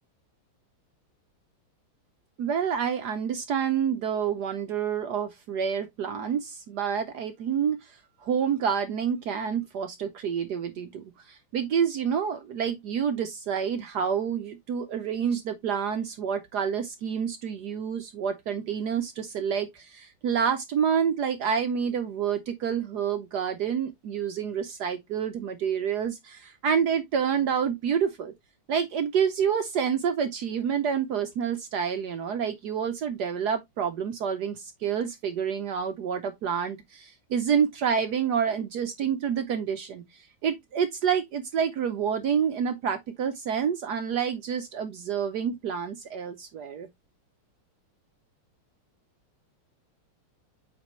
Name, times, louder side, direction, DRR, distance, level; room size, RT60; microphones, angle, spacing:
voice 1, 2.4-28.3 28.7-40.0 40.4-46.9, right 7 dB, 65° right, 1.0 m, -28 dB
8.5 x 4.1 x 2.9 m
omnidirectional pair, 2.3 m